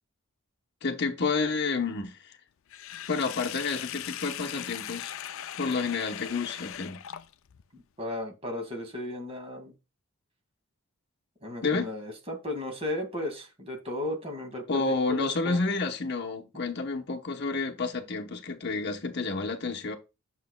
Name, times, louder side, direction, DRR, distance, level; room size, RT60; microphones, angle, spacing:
voice 1, 0.8-2.4 3.1-5.2 5.6-7.0 11.6-11.9 14.7-20.0, left 4 dB, 50° left, 0.9 m, -30 dB
Sink (filling or washing), 2.7-7.6, left 11 dB, 65° left, 0.4 m, -39 dB
voice 2, 7.7-9.7 11.4-15.6, left 1 dB, 25° right, 2.1 m, -35 dB
9.2 x 6.7 x 2.3 m
head